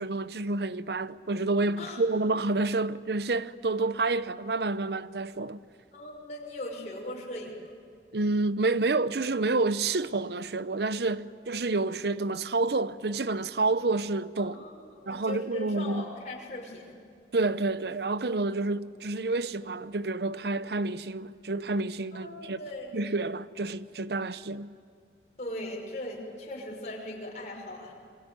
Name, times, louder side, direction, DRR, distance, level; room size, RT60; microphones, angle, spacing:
voice 1, 0.0-5.6 8.1-14.7 15.1-16.1 17.3-22.6 22.9-24.7, right 3 dB, 65° right, 0.8 m, -29 dB
voice 2, 5.9-7.6 14.4-17.0 22.1-23.0 25.4-27.9, left 1 dB, 40° left, 5.6 m, -39 dB
26.5 x 23.5 x 9.3 m
head